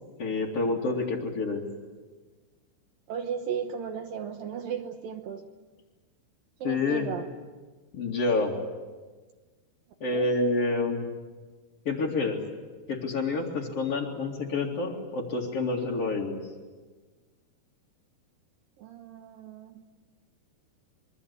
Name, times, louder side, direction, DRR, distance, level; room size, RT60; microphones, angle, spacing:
voice 1, 0.2-1.6 6.6-7.1 7.9-8.6 10.0-11.1 11.8-12.4 12.9-16.4, left 3 dB, 40° left, -5 dB, 2.6 m, -28 dB
voice 2, 3.1-5.5 6.6-7.3 10.0-10.3 18.8-19.8, right 7 dB, 75° right, 6 dB, 2.1 m, -35 dB
26.0 x 23.0 x 8.3 m, 1.3 s
omnidirectional pair, 5.6 m